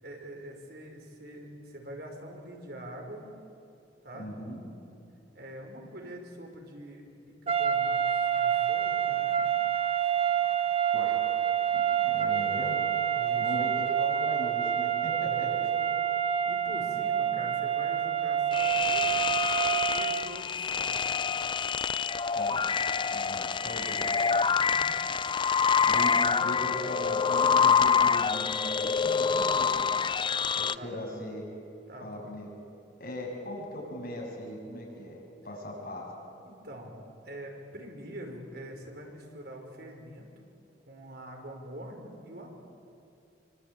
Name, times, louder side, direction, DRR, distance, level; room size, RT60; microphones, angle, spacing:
voice 1, 0.0-3.3 4.0-4.3 5.3-9.4 10.0-10.1 13.1-13.5 15.3-15.4 16.5-19.2 19.9-21.2 24.4-24.8 30.8-30.9 31.9-32.2 36.4-37.0 37.2-40.3 40.9-42.5, right 1 dB, 60° right, 2 dB, 5.6 m, -44 dB
voice 2, 4.1-4.7 10.9-11.2 11.7-12.8 13.4-15.7 22.3-22.7 23.1-24.4 25.8-30.1 30.5-31.5 32.0-32.5 33.0-36.1, left 1 dB, 55° left, -1 dB, 7.8 m, -39 dB
sound 1, 7.5-20.3, right 9 dB, 35° right, 1.0 m, -27 dB
sound 2, 18.5-30.8, left 6 dB, 25° left, 0.5 m, -26 dB
26.0 x 25.0 x 9.1 m, 2.6 s
head